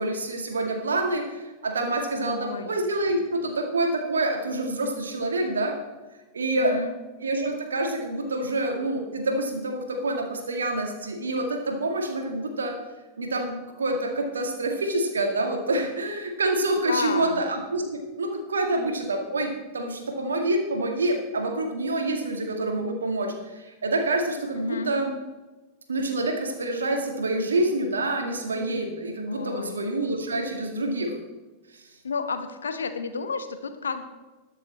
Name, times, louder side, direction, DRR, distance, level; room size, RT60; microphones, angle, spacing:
voice 1, 0.0-5.8 6.3-6.8 7.2-12.7 13.2-25.1 25.9-31.2 31.7-31.8, right 2 dB, 70° right, 4 dB, 1.9 m, -27 dB
voice 2, 2.1-2.7 6.6-6.9 16.8-17.4 24.6-24.9 29.3-29.8 32.0-34.0, left 5 dB, 70° left, 9 dB, 1.0 m, -31 dB
20.5 x 6.9 x 4.3 m, 1.2 s
figure-of-eight pair, 90°, 0 cm